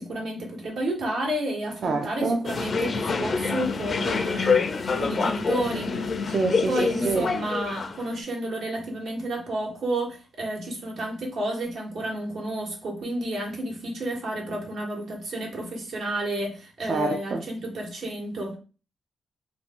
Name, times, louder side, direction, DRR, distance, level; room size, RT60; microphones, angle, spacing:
voice 1, 0.0-6.1 6.7-18.6, right 1 dB, 80° right, 1.1 m, -31 dB
voice 2, 1.8-2.4 6.3-6.8 7.0-7.3 16.9-17.4, right 3 dB, 65° right, 0.4 m, -26 dB
sound 1, 2.4-8.2, left 4 dB, 50° left, 0.4 m, -26 dB
2.5 x 2.3 x 3.5 m
cardioid pair, 85°, 0 cm